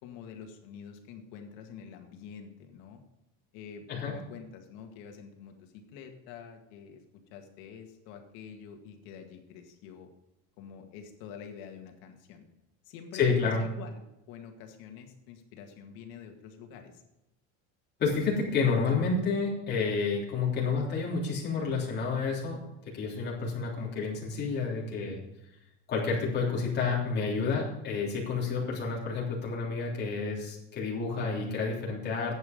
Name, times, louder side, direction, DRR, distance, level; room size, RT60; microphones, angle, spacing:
voice 1, 0.0-3.0 3.5-7.0 7.3-10.1 10.6-12.5 12.8-14.0 14.3-17.0 24.0-24.1, left 7 dB, 70° left, 5 dB, 2.0 m, -47 dB
voice 2, 13.1-13.6 18.0-25.2 25.9-32.3, left 4 dB, 30° left, -4 dB, 3.3 m, -30 dB
11.0 x 8.5 x 5.2 m, 0.89 s
cardioid pair, 175°, 36 cm